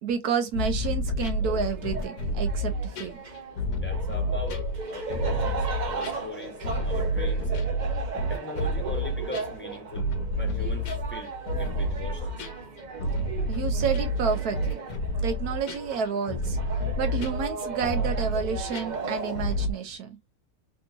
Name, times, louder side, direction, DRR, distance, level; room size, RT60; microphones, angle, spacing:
voice 1, 0.0-3.2 13.5-14.8 15.2-16.6 17.0-20.2, right 6 dB, 80° right, 1.2 m, -30 dB
sound 1, 0.5-19.7, equal, 80° left, 1.3 m, -29 dB
sound 2, 1.4-19.7, right 4 dB, 50° right, 0.5 m, -37 dB
voice 2, 3.7-6.6 6.8-7.5 8.3-10.1 10.4-12.4, left 2 dB, 10° left, 1.0 m, -40 dB
3.5 x 2.6 x 2.7 m
omnidirectional pair, 1.6 m